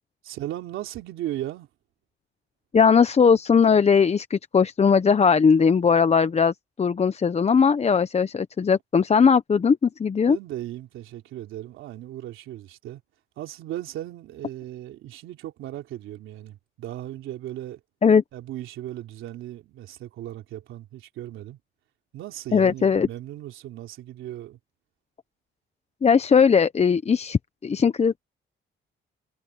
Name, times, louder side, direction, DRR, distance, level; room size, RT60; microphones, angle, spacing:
voice 1, 0.2-1.7 10.3-13.0 13.4-17.8 18.3-21.6 22.1-24.6, right 13 dB, 85° right, 3.2 m, -36 dB
voice 2, 2.7-10.4 18.0-18.2 22.5-23.1 26.0-28.2, left 6 dB, 35° left, 0.9 m, -19 dB
cardioid pair, 90°, 20 cm